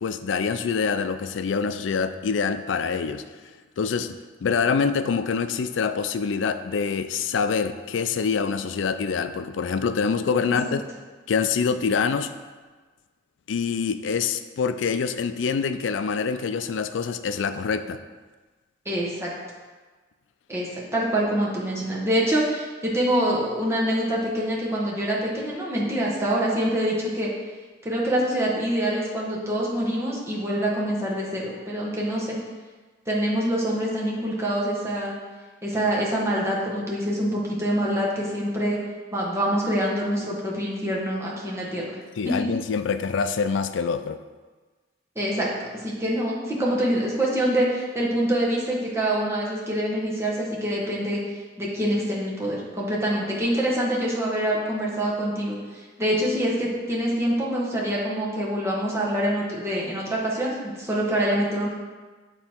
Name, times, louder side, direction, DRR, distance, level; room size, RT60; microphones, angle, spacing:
voice 1, 0.0-3.2 3.8-10.8 11.3-12.3 13.5-18.0 42.2-44.2, left 5 dB, 75° left, 11 dB, 0.4 m, -25 dB
voice 2, 10.4-10.7 18.8-19.3 20.5-27.3 27.8-32.4 33.1-35.1 35.6-38.8 39.1-42.0 42.2-42.5 45.1-45.5 45.8-51.2 51.6-61.7, right 1 dB, 15° right, -5 dB, 1.2 m, -25 dB
6.8 x 4.0 x 4.4 m, 1.3 s
head